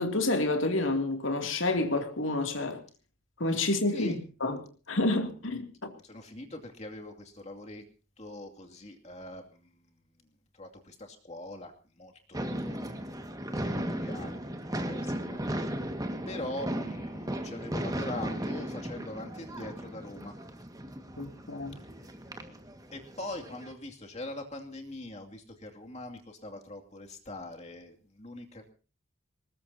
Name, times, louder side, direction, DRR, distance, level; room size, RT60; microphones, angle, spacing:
voice 1, 0.0-2.8 3.4-5.9 21.2-21.8, left 2 dB, 65° left, 2.6 m, -29 dB
voice 2, 6.0-7.8 8.2-9.9 10.5-12.9 13.5-15.5 16.3-20.3 22.0-22.1 22.9-28.7, left 1 dB, 30° left, 2.5 m, -43 dB
sound 1, 12.3-23.7, right 1 dB, 15° right, 1.8 m, -36 dB
23.0 x 20.0 x 2.8 m
head